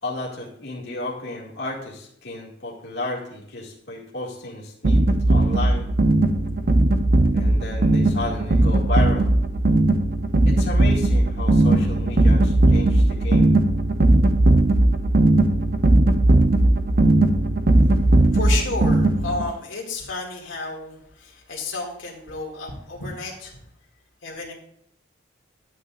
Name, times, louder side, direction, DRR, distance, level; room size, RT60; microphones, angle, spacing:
voice 1, 0.0-5.0 5.3-5.9 7.3-9.3 10.5-13.5, left 2 dB, 60° left, -4 dB, 2.1 m, -32 dB
sound 1, 4.8-19.5, right 2 dB, 50° right, 0.6 m, -18 dB
voice 2, 18.3-23.6 24.2-24.5, left 3 dB, 85° left, -1 dB, 2.2 m, -31 dB
12.0 x 8.4 x 2.5 m, 0.70 s
head